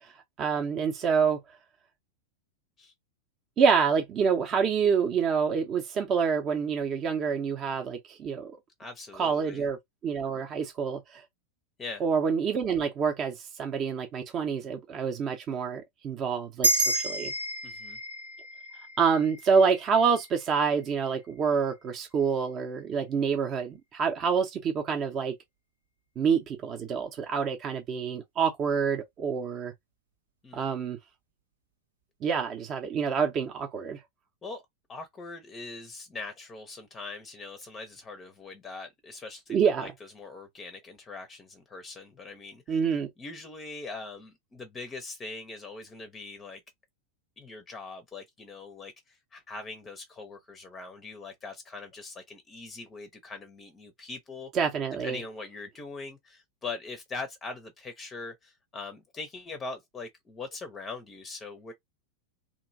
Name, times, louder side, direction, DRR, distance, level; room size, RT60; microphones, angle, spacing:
voice 1, 0.4-1.4 3.6-8.6 9.2-9.8 10.0-11.2 12.0-17.3 19.0-25.3 26.2-29.7 30.5-31.0 32.2-34.0 39.5-39.9 42.7-43.1 54.5-55.2, right 6 dB, 30° right, 0.6 m, -27 dB
voice 2, 8.8-9.6 11.8-12.0 17.6-18.0 30.4-30.6 34.4-34.6 34.9-42.8 43.2-46.6 47.4-54.5 55.0-61.7, left 3 dB, 20° left, 0.6 m, -42 dB
sound 1, 16.6-21.3, right 2 dB, 75° right, 1.1 m, -31 dB
3.0 x 2.5 x 2.6 m
figure-of-eight pair, 90°, 0 cm